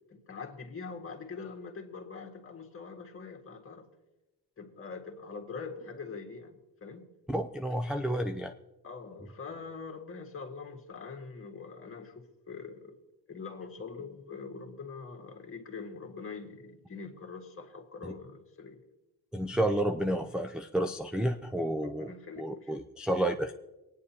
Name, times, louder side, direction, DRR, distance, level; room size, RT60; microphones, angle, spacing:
voice 1, 0.1-3.9 4.6-7.1 8.8-13.0 13.3-18.8 21.8-22.8, left 4 dB, 35° left, 1.7 m, -43 dB
voice 2, 7.3-8.5 19.3-22.1 22.4-23.5, right 1 dB, ahead, 0.3 m, -30 dB
20.0 x 9.5 x 2.9 m
cardioid pair, 110°, 39 cm